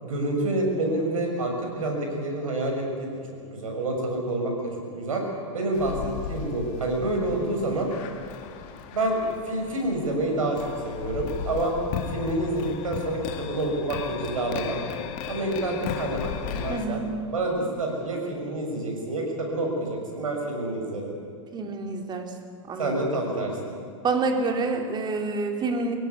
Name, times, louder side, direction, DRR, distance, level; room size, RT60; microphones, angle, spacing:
voice 1, 0.0-3.1 3.5-4.5 5.0-5.3 5.5-7.9 8.9-9.2 9.4-11.8 12.1-14.8 15.3-17.0 17.3-21.1 22.8-23.6, right 2 dB, 85° right, 1 dB, 6.7 m, -28 dB
sound 1, 5.7-16.9, left 8 dB, 50° left, 2.3 m, -36 dB
voice 2, 16.7-17.1 21.5-22.3 22.7-22.9 24.0-25.9, right 3 dB, 25° right, 4 dB, 3.4 m, -27 dB
23.0 x 17.0 x 9.6 m, 2.4 s
hypercardioid pair, 110°, 17 cm